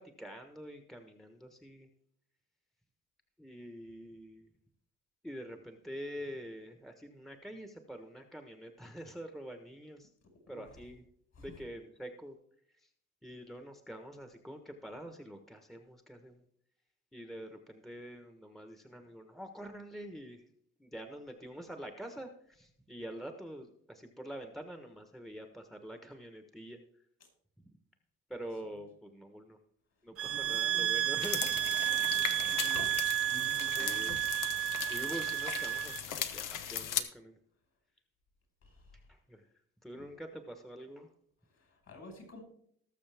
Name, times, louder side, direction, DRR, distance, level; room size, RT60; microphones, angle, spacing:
voice 1, 0.0-1.9 3.4-4.5 5.2-10.1 10.5-11.0 11.4-12.3 13.2-16.4 17.1-20.4 20.8-26.8 28.3-29.6 30.0-31.6 33.8-34.2 34.8-37.3 39.1-39.4 39.8-41.1, equal, ahead, 6 dB, 1.3 m, -46 dB
voice 2, 10.5-10.8 11.3-11.6 28.6-28.8 30.2-31.0 32.5-32.9 33.3-34.2 38.6-38.9 39.9-40.1 41.5-42.4, left 2 dB, 55° left, 3 dB, 5.1 m, -50 dB
sound 1, 30.2-36.0, right 12 dB, 45° right, 0.6 m, -32 dB
sound 2, 31.2-37.0, left 9 dB, 85° left, 1.2 m, -38 dB
19.5 x 6.7 x 3.5 m, 0.66 s
cardioid pair, 110°, 31 cm